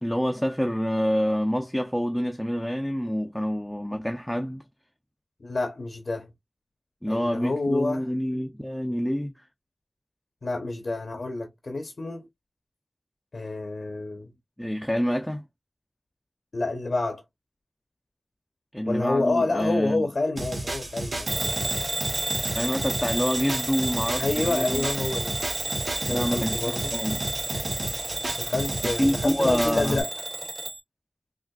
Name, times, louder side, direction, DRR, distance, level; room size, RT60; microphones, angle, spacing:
voice 1, 0.0-4.6 7.0-9.3 14.6-15.4 18.7-20.1 22.6-24.9 26.1-27.2 28.8-30.0, equal, 10° left, 0.5 m, -27 dB
voice 2, 5.4-6.3 7.1-8.1 10.4-12.3 13.3-14.3 16.5-17.2 18.9-21.7 24.2-25.3 26.1-26.9 28.4-30.1, left 2 dB, 80° left, 0.6 m, -28 dB
sound 1, 20.4-30.0, right 1 dB, 80° right, 1.1 m, -33 dB
Bell / Alarm, 21.3-30.8, right 2 dB, 55° right, 0.5 m, -31 dB
3.6 x 2.4 x 2.2 m
wide cardioid pair, 40°, 0 cm